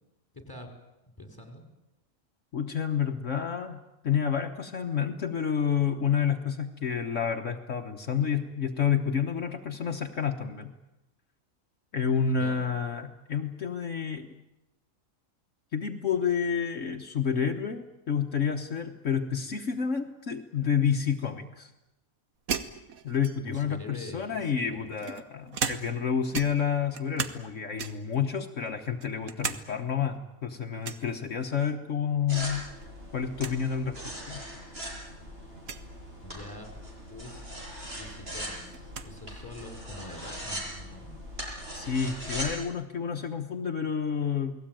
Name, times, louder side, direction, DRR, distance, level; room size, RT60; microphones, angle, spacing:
voice 1, 0.3-0.7 1.0-1.7 12.3-12.6 23.4-24.9 36.2-36.8 37.1-37.5 37.9-41.2, left 2 dB, 15° left, 4 dB, 4.8 m, -45 dB
voice 2, 2.5-10.7 11.9-14.3 15.7-21.7 23.0-32.7 33.1-34.4 41.7-44.5, left 7 dB, 65° left, 3 dB, 1.6 m, -29 dB
sound 1, 22.5-23.7 24.5-26.1 26.3-27.5 27.8-28.2 28.7-29.6 30.0-30.1 30.8-31.1 32.5-32.9 33.1-33.2 33.4-33.6 34.4-34.5 35.6-35.9 37.5-37.6 38.0-39.1, right 6 dB, 85° right, 1.7 m, -36 dB
sound 2, 32.3-42.6, equal, 45° right, 6.7 m, -40 dB
29.0 x 19.5 x 9.1 m, 0.97 s
omnidirectional pair, 1.4 m